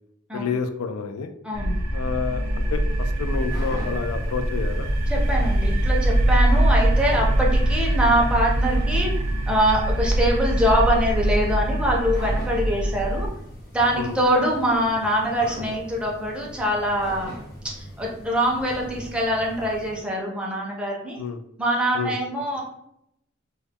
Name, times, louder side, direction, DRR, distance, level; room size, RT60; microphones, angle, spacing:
voice 1, 0.3-1.3 1.9-4.9 14.0-14.2 21.2-21.4 21.9-22.1, left 5 dB, 85° left, 8 dB, 0.3 m, -29 dB
voice 2, 1.4-1.8 5.1-9.1 9.5-13.3 13.7-17.3 17.6-21.2 21.6-22.6, equal, 5° right, -2 dB, 0.5 m, -24 dB
sound 1, 1.5-13.3, right 1 dB, 90° right, 0.4 m, -23 dB
sound 2, 2.9-20.1, equal, 45° left, 1.0 m, -41 dB
2.2 x 2.0 x 3.4 m, 0.77 s
head